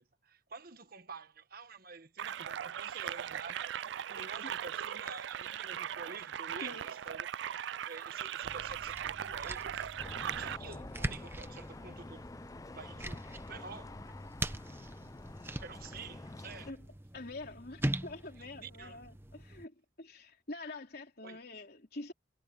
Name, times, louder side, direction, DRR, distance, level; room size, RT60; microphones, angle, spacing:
voice 1, 0.0-7.3 7.5-10.0 10.4-12.3 12.6-14.0 15.6-16.7 18.4-19.0 21.2-21.4, right 4 dB, 50° right, 1.3 m, -49 dB
sound 1, 2.2-10.6, right 9 dB, 65° right, 0.3 m, -39 dB
sound 2, 8.4-19.6, right 1 dB, 10° right, 0.7 m, -42 dB
sound 3, 10.0-16.7, left 2 dB, 15° left, 0.3 m, -48 dB
voice 2, 17.1-22.1, left 2 dB, 50° left, 3.4 m, -46 dB
head